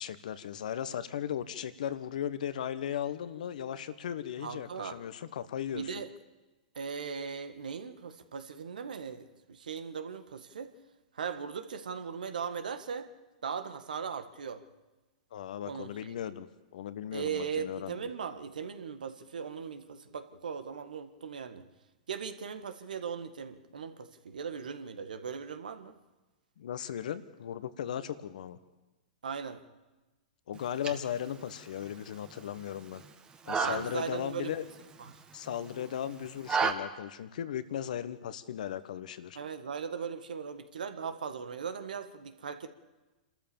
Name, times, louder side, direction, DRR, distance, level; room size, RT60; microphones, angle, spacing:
voice 1, 0.0-5.9 15.3-18.0 26.6-28.6 30.5-33.0 33.4-34.7 35.3-39.4, left 9 dB, 65° left, 14 dB, 1.4 m, -37 dB
voice 2, 4.4-5.0 5.7-6.1 6.7-10.7 11.1-13.1 13.4-14.6 15.6-16.1 17.1-21.6 22.1-25.9 29.2-29.6 33.6-34.5 35.0-35.1 39.3-42.7, right 6 dB, 75° right, 9 dB, 1.7 m, -38 dB
sound 1, 30.5-36.7, right 5 dB, 20° right, 1.5 m, -36 dB
28.0 x 13.5 x 7.2 m, 1.1 s
hypercardioid pair, 110°, 5 cm